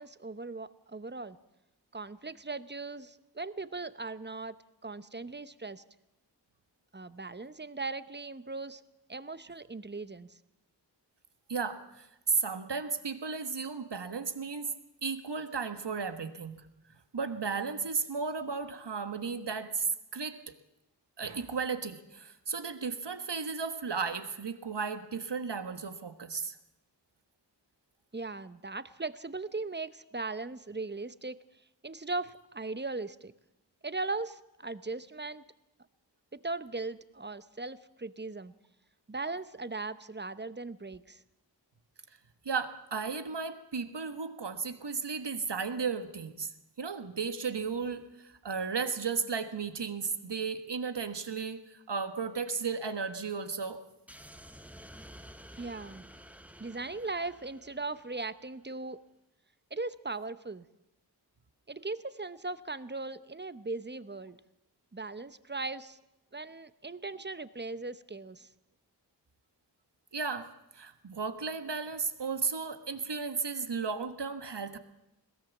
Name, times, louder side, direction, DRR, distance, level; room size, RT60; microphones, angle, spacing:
voice 1, 0.0-1.4 1.9-4.5 4.8-5.8 6.9-8.8 9.1-10.3 28.1-31.4 31.8-33.3 33.8-35.4 36.3-38.5 39.1-41.2 55.6-56.1 56.6-59.0 59.7-60.7 61.7-64.4 64.9-66.0 66.3-68.5, right 3 dB, 25° right, 14 dB, 0.8 m, -38 dB
voice 2, 11.5-14.7 15.0-16.7 17.1-20.5 21.2-26.6 42.4-46.5 46.8-53.8 70.1-70.5 70.7-74.8, right 5 dB, 75° right, 10 dB, 1.4 m, -34 dB
sound 1, 54.1-58.4, equal, 5° right, 1.1 m, -51 dB
21.5 x 17.0 x 7.2 m, 0.90 s
wide cardioid pair, 55°, 42 cm